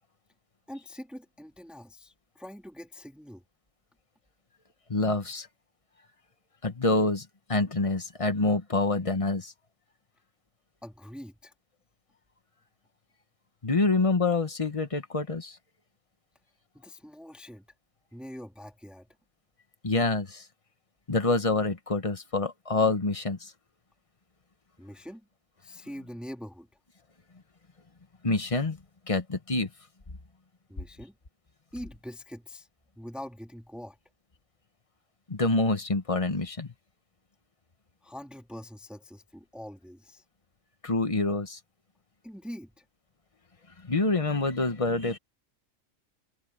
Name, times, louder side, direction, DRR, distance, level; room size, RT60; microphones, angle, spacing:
voice 1, 0.7-3.4 10.8-11.5 16.7-17.7 18.1-19.1 24.8-25.3 25.6-26.7 30.7-31.1 31.7-32.7 33.0-34.0 38.0-40.2 42.2-42.8, equal, ahead, 2.4 m, -43 dB
voice 2, 4.9-5.5 6.6-9.5 13.6-15.6 19.8-20.4 21.1-23.5 28.2-28.8 29.1-29.7 35.3-36.7 40.8-41.6 43.8-45.2, left 3 dB, 25° left, 1.3 m, -26 dB
omnidirectional pair, 1.3 m